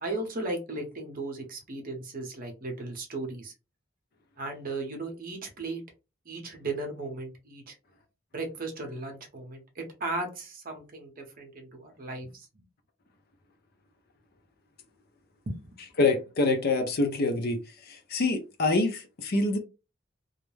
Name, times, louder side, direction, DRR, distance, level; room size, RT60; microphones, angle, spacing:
voice 1, 0.0-3.5 4.4-5.8 6.3-7.7 8.3-12.6 15.5-15.8, right 2 dB, 45° right, 0.7 m, -36 dB
voice 2, 16.0-17.6 17.9-19.6, left 3 dB, 50° left, 0.5 m, -26 dB
2.3 x 2.0 x 3.1 m
head